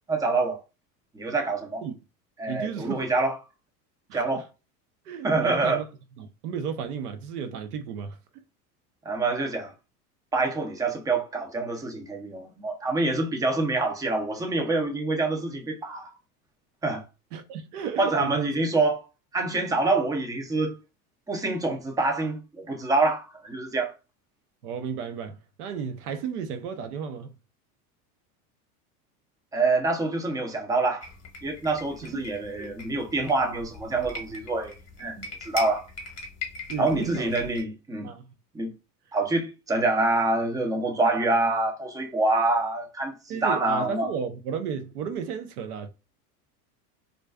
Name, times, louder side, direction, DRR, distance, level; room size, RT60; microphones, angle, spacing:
voice 1, 0.1-0.6 1.1-1.8 2.4-3.3 4.1-4.4 5.2-5.8 9.1-9.7 10.3-16.1 16.8-17.0 18.0-19.1 19.3-20.8 21.3-23.9 29.5-31.1 31.4-34.7 35.0-35.9 36.8-38.1 38.5-38.7 39.1-44.1, right 2 dB, 10° right, 0.4 m, -26 dB
voice 2, 2.5-3.1 4.1-4.4 5.0-5.8 6.2-8.2 17.3-18.8 24.6-27.3 32.0-32.2 32.5-32.7 36.7-37.3 38.0-38.3 43.3-45.9, right 7 dB, 80° right, 0.7 m, -33 dB
sound 1, 31.0-37.6, left 2 dB, 35° left, 0.8 m, -40 dB
2.4 x 2.2 x 2.2 m
hypercardioid pair, 90°, 46 cm